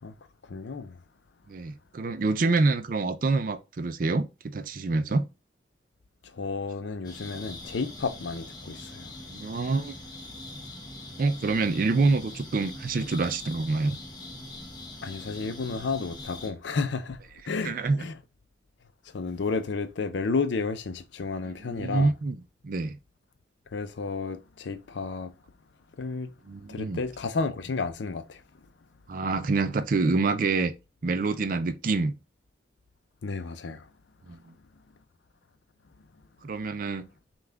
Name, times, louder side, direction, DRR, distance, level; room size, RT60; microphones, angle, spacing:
voice 1, 0.5-0.9 6.4-9.1 15.0-17.2 17.5-17.7 18.0-18.1 19.1-22.1 23.7-25.3 26.0-26.3 26.7-28.4 33.2-33.8, left 4 dB, 75° left, 0.5 m, -31 dB
voice 2, 1.5-5.3 7.3-7.4 9.3-9.9 11.2-14.0 17.6-18.1 21.4-23.0 26.4-27.0 29.1-30.7 31.0-32.2 34.3-34.5 36.4-37.1, right 3 dB, 45° right, 0.4 m, -27 dB
sound 1, 7.0-16.5, left 2 dB, 20° left, 0.8 m, -42 dB
5.5 x 2.4 x 3.4 m
head